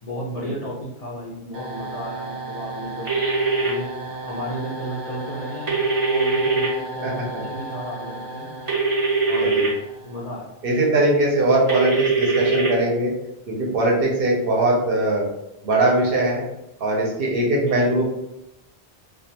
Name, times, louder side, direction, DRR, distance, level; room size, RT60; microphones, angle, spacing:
voice 1, 0.0-3.1 3.6-5.7 6.1-8.5 9.3-9.6 10.0-10.6 11.5-11.7 17.6-18.0, equal, 55° left, -6 dB, 0.4 m, -33 dB
sound 1, 1.5-10.4, right 2 dB, 90° right, 0.9 m, -35 dB
sound 2, 3.1-3.7 5.7-6.7 8.7-9.7 11.7-12.7, right 3 dB, 35° right, 0.7 m, -21 dB
voice 2, 7.0-7.4 9.4-9.7 10.6-13.1 13.5-15.3 15.6-16.4 16.8-18.0, right 2 dB, 60° right, -2 dB, 0.8 m, -21 dB
2.3 x 2.2 x 2.8 m, 0.87 s
omnidirectional pair, 1.2 m